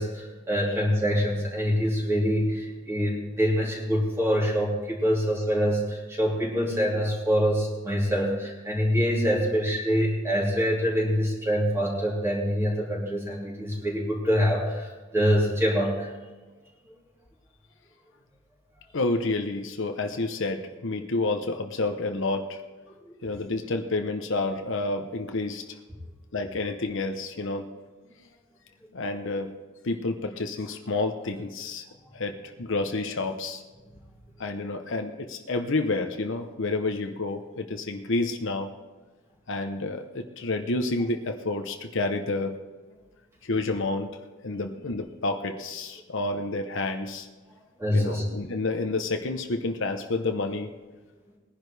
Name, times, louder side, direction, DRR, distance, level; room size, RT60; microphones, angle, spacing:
voice 1, 0.0-16.1 44.5-44.6 47.8-48.2, equal, 15° right, -5 dB, 3.5 m, -25 dB
voice 2, 18.9-22.4 23.2-25.6 26.3-27.7 28.9-29.5 29.8-31.8 32.1-33.6 34.4-38.7 39.5-42.5 43.4-44.1 44.4-47.3 47.9-50.7, left 2 dB, 65° left, 5 dB, 0.9 m, -29 dB
20.5 x 11.0 x 3.4 m, 1.3 s
head